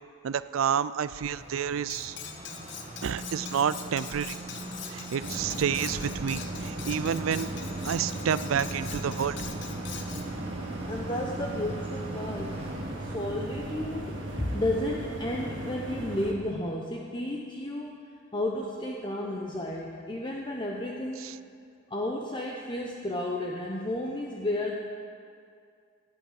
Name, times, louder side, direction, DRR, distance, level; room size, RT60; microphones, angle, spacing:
voice 1, 0.2-2.2 3.0-4.4 4.9-7.5 7.8-9.4 21.2-21.3, right 8 dB, 85° right, 16 dB, 0.4 m, -29 dB
sound 1, 1.3-16.0, right 2 dB, 30° right, 1.9 m, -41 dB
Cutlery silverware, 1.9-10.3, left 8 dB, 60° left, 1.0 m, -43 dB
sound 2, 5.2-16.3, right 1 dB, 65° right, 1.4 m, -37 dB
voice 2, 10.9-18.0 18.3-21.4 21.9-24.7, left 1 dB, 25° left, -1 dB, 0.9 m, -32 dB
17.0 x 8.2 x 6.5 m, 2.3 s
head